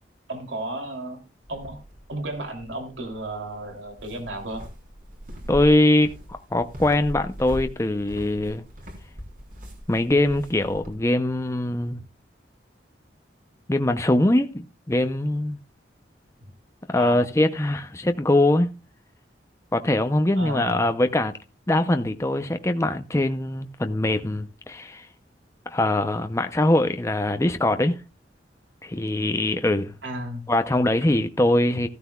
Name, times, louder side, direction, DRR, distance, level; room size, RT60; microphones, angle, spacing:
voice 1, 0.3-1.2 1.5-1.8 2.1-4.6 16.9-17.3 20.3-20.8 30.0-30.5, right 1 dB, 85° right, 2.9 m, -33 dB
sound 1, 1.4-11.0, equal, 50° right, 3.7 m, -40 dB
voice 2, 5.5-8.6 9.9-12.0 13.7-15.6 16.9-18.7 19.7-21.3 21.7-25.1 25.7-28.0 28.8-29.9 30.5-31.9, left 1 dB, 15° left, 0.6 m, -22 dB
15.0 x 13.0 x 2.3 m
head